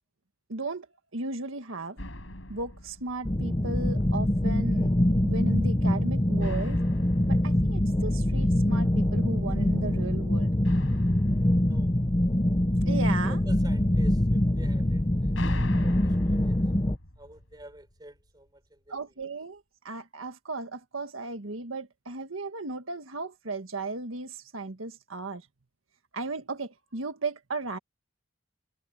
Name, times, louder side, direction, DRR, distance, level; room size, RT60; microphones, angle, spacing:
voice 1, 0.5-0.9 1.1-2.0 2.5-4.9 5.2-6.8 7.3-10.5 12.8-13.4 18.9-25.4 26.1-27.8, right 3 dB, 90° right, 1.6 m, -35 dB
sound 1, 2.0-3.9 6.4-8.8 10.6-12.9 14.9-17.9, left 1 dB, 75° left, 5.5 m, -40 dB
sound 2, 3.2-17.0, left 1 dB, 20° left, 0.9 m, -24 dB
voice 2, 11.6-12.1 13.0-16.6 17.2-19.1, right 1 dB, 20° right, 5.5 m, -50 dB
head